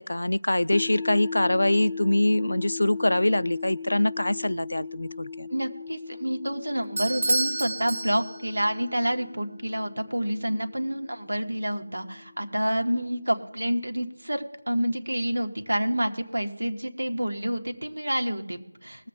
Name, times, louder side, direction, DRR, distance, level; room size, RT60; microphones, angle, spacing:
voice 1, 0.0-5.5, left 1 dB, 65° left, 19 dB, 0.4 m, -24 dB
sound 1, 0.7-12.8, left 5 dB, 10° left, 0.6 m, -38 dB
voice 2, 5.5-19.1, equal, 70° right, 5 dB, 1.6 m, -28 dB
Bell / Doorbell, 7.0-8.7, right 2 dB, 40° right, 0.4 m, -29 dB
21.0 x 7.6 x 3.7 m, 0.98 s
figure-of-eight pair, 180°, 0 cm